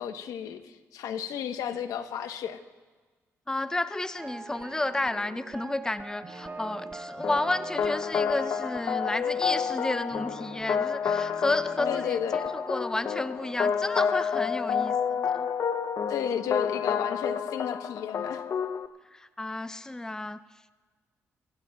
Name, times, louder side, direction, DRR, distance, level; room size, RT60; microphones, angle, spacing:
voice 1, 0.0-2.6 11.9-12.5 16.1-18.4, left 8 dB, 85° left, 8 dB, 1.0 m, -33 dB
voice 2, 3.5-15.5 19.1-20.4, left 2 dB, 10° left, 13 dB, 0.5 m, -31 dB
sound 1, 4.2-12.2 12.4-14.2, right 3 dB, 25° right, 0.8 m, -45 dB
sound 2, 4.5-12.3, right 4 dB, 60° right, 1.6 m, -49 dB
sound 3, 7.2-18.9, left 7 dB, 55° left, 0.7 m, -29 dB
25.5 x 18.0 x 2.3 m, 1.4 s
cardioid pair, 75°, 6 cm